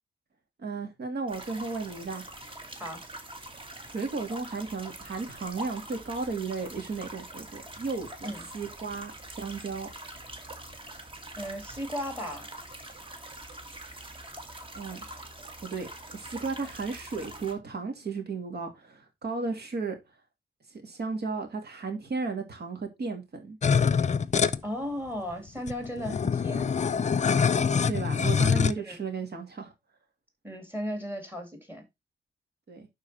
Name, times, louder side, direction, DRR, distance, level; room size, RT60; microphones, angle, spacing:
voice 1, 0.6-2.3 3.8-9.9 14.7-15.1 15.6-20.0 20.7-23.6 27.9-29.7 32.7-32.9, right 4 dB, 55° right, 2.4 m, -34 dB
sound 1, 1.3-17.5, right 1 dB, 25° right, 1.6 m, -44 dB
voice 2, 2.7-3.0 8.2-8.4 11.4-12.5 24.6-26.7 28.9-29.0 30.4-31.9, equal, 10° right, 2.3 m, -35 dB
sound 2, 23.6-24.6 25.3-25.4 25.6-28.7, left 6 dB, 40° left, 0.5 m, -24 dB
11.0 x 4.1 x 4.1 m
wide cardioid pair, 160°, 19 cm